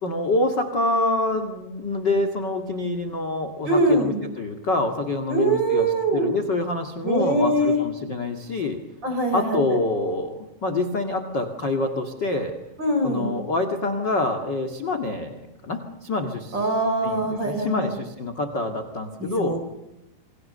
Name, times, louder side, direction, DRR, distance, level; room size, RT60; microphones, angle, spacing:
voice 1, 0.0-8.8 9.3-12.5 13.0-16.6 17.0-19.6, left 2 dB, 40° left, 5 dB, 1.8 m, -26 dB
voice 2, 3.6-4.2 5.3-6.3 7.0-7.8 9.0-9.6 12.8-13.3 16.5-17.9 19.2-19.7, right 1 dB, 25° right, 6 dB, 4.5 m, -23 dB
29.0 x 24.0 x 6.9 m, 0.94 s
omnidirectional pair, 5.0 m